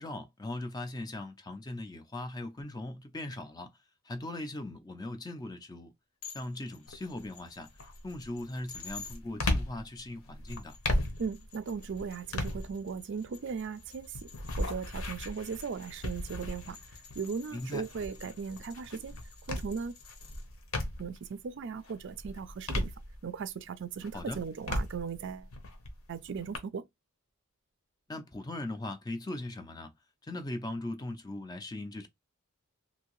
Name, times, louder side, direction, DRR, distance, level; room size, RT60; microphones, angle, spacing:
voice 1, 0.0-3.7 4.1-5.9 6.3-7.7 8.0-10.8 17.5-17.9 24.1-24.4 28.1-29.9 30.2-32.1, left 2 dB, 20° left, 0.4 m, -39 dB
sound 1, 6.2-9.2 10.3-20.4, left 6 dB, 85° left, 1.1 m, -52 dB
sound 2, 6.9-7.3 7.7-21.3 21.7-23.6 24.0-26.6, left 1 dB, 65° left, 0.9 m, -37 dB
voice 2, 11.2-14.1 14.6-16.8 17.2-19.1 19.5-19.9 21.0-22.9 23.2-25.5 26.1-26.8, right 6 dB, 55° right, 0.4 m, -37 dB
2.7 x 2.6 x 3.0 m
head